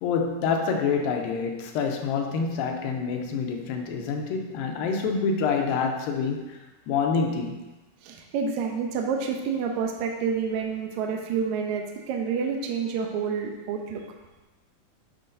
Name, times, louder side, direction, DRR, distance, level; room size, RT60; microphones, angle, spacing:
voice 1, 0.0-7.6, left 5 dB, 85° left, 3 dB, 2.5 m, -27 dB
voice 2, 8.0-14.0, right 6 dB, 75° right, 2 dB, 1.8 m, -28 dB
11.5 x 5.0 x 2.6 m, 1.1 s
omnidirectional pair, 4.0 m